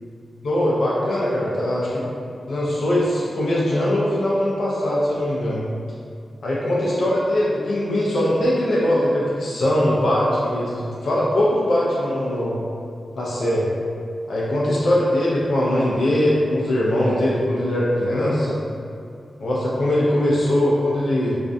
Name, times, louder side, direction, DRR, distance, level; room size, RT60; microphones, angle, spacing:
voice 1, 0.4-2.0 2.5-5.6 6.4-12.6 13.2-13.7 14.3-18.6 19.4-21.3, left 1 dB, 65° left, -6 dB, 0.4 m, -21 dB
2.4 x 2.1 x 2.5 m, 2.3 s
wide cardioid pair, 150°, 0 cm